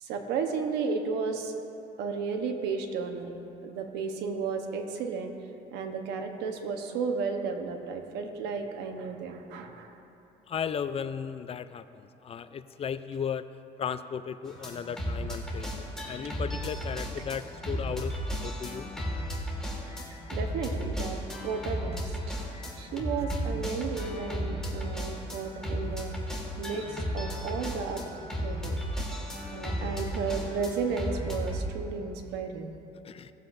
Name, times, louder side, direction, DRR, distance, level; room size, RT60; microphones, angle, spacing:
voice 1, 0.0-1.5 2.0-3.3 3.6-5.3 5.7-9.9 20.3-21.2 21.4-22.0 22.8-26.1 26.6-28.0 28.4-28.8 29.5-32.8, right 5 dB, 85° right, 4 dB, 1.0 m, -33 dB
voice 2, 10.5-13.5 13.8-18.9 33.0-33.3, left 7 dB, 35° left, 12 dB, 0.4 m, -35 dB
sound 1, 14.5-31.6, equal, 5° left, 1.9 m, -34 dB
18.0 x 7.8 x 2.6 m, 2.9 s
cardioid pair, 110°, 17 cm